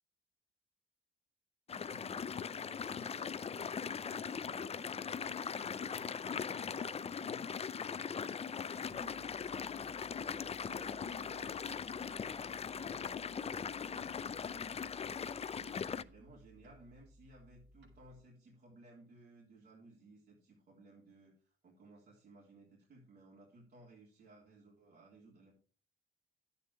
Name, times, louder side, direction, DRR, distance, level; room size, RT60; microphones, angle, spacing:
sound 1, 1.7-16.0, left 6 dB, 30° left, 0.5 m, -40 dB
voice 1, 1.7-14.8 15.5-25.5, right 2 dB, 50° right, -4 dB, 3.5 m, -59 dB
sound 2, 8.8-18.2, equal, 75° right, 5.8 m, -63 dB
11.0 x 8.5 x 4.7 m, 0.40 s
cardioid pair, 90°, 20 cm